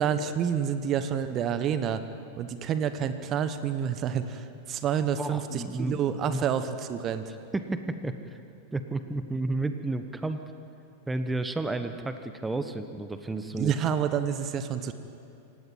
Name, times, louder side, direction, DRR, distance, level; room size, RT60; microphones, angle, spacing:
voice 1, 0.0-2.0 2.4-7.3 13.5-14.9, right 8 dB, 30° right, 11 dB, 1.2 m, -28 dB
voice 2, 5.2-6.4 7.5-8.4 8.7-10.4 11.1-13.7, right 2 dB, 10° right, 9 dB, 1.3 m, -32 dB
27.0 x 16.5 x 9.5 m, 2.7 s
figure-of-eight pair, 90°, 0 cm